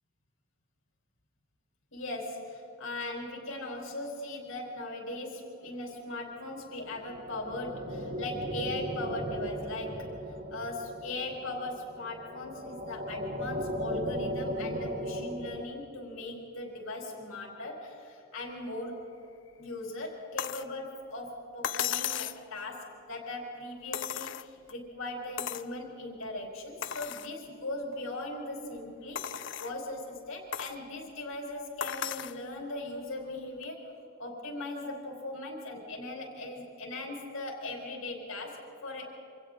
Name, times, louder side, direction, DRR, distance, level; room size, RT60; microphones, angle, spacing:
voice 1, 1.9-10.1 10.5-19.0 19.6-33.8 34.2-39.1, left 2 dB, 80° left, -1 dB, 4.7 m, -39 dB
sound 1, 6.8-15.6, equal, 45° right, 1.4 m, -37 dB
sound 2, 20.4-20.7 21.6-22.4 23.9-24.7 25.4-25.7 26.2-26.3 26.8-27.3 27.9-28.0 29.2-29.8 30.5-30.8 31.8-32.4 33.6-33.7, left 9 dB, 65° left, 0.6 m, -35 dB
28.5 x 26.0 x 3.9 m, 2.9 s
head